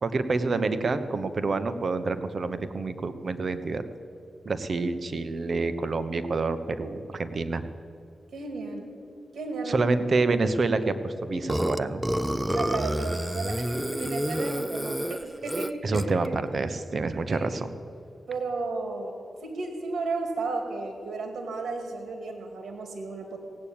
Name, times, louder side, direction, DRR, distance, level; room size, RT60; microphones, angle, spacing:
voice 1, 0.0-3.8 4.4-7.6 9.7-12.1 15.8-17.7, right 3 dB, 55° right, 11 dB, 0.9 m, -27 dB
voice 2, 8.3-9.0 9.3-9.9 12.5-16.1 17.3-17.6 18.3-23.4, right 3 dB, 80° right, 4 dB, 2.2 m, -34 dB
Burping eructation, 11.5-16.3, right 1 dB, 10° right, 0.6 m, -29 dB
17.0 x 8.6 x 8.6 m, 2.6 s
cardioid pair, 65°, 0 cm